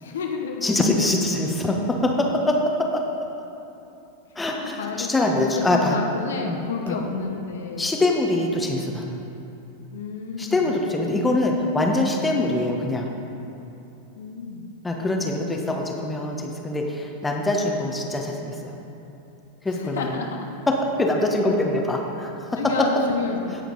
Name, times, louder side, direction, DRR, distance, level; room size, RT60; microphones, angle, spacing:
voice 1, 0.0-0.7 4.6-7.9 8.6-8.8 9.9-10.7 14.2-14.7 19.8-20.5 22.6-23.6, left 5 dB, 65° left, 2 dB, 1.0 m, -31 dB
voice 2, 0.6-3.1 4.4-6.0 6.4-6.6 6.8-7.0 7.8-9.2 10.4-13.1 14.8-18.8 19.6-20.2 21.0-22.6, left 2 dB, 10° left, 1 dB, 1.2 m, -24 dB
17.0 x 6.5 x 4.1 m, 2.9 s
figure-of-eight pair, 90°, 0 cm